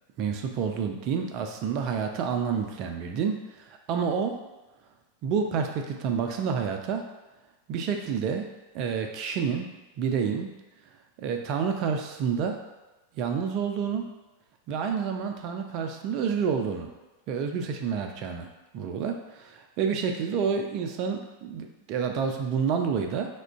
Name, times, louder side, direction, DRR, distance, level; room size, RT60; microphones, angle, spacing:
voice 1, 0.2-4.3 5.2-7.0 7.7-8.4 8.7-9.7 10.0-10.5 11.2-12.6 13.2-14.0 14.7-16.9 17.3-18.5 18.7-23.3, right 6 dB, 40° right, 4 dB, 0.3 m, -29 dB
2.3 x 2.1 x 3.4 m, 1.1 s
figure-of-eight pair, 90°, 0 cm